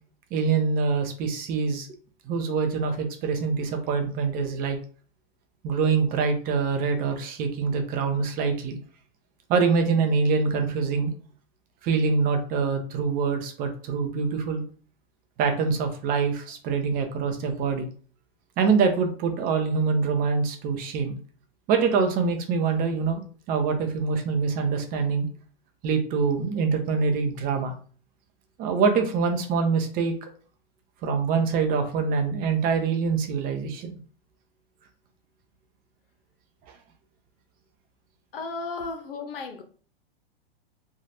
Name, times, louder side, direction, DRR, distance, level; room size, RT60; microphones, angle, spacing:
voice 1, 0.3-1.9 2.3-4.8 5.6-8.8 9.5-11.1 11.8-14.6 15.4-17.9 18.6-21.2 21.7-25.3 25.8-27.7 28.6-30.1 31.0-34.0 38.8-38.9, right 5 dB, 30° right, 0.6 m, -25 dB
voice 2, 38.3-39.6, left 4 dB, 70° left, 0.8 m, -34 dB
3.2 x 2.3 x 2.7 m
hypercardioid pair, 115°, 30 cm